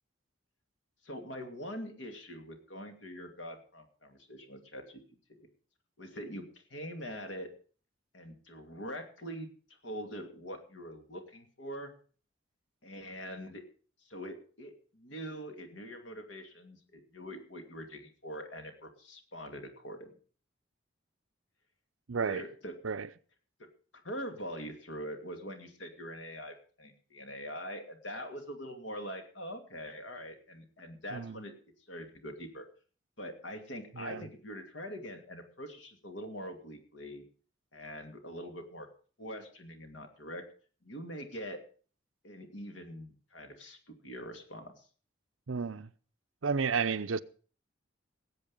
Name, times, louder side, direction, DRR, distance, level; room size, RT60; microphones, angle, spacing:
voice 1, 1.0-5.0 5.4-5.5 6.0-6.5 6.7-7.5 8.1-9.5 9.8-11.9 12.8-13.6 14.0-20.1 22.2-22.8 23.6-23.7 24.0-31.5 31.9-32.7 33.2-37.3 37.7-38.9 39.2-40.4 40.8-41.6 42.2-44.8, equal, 70° left, 2.5 m, -43 dB
voice 2, 22.1-22.4 22.8-23.1 31.1-31.4 33.9-34.3 45.5-45.9 46.4-47.2, right 5 dB, 90° right, 0.7 m, -32 dB
18.0 x 8.1 x 5.4 m
head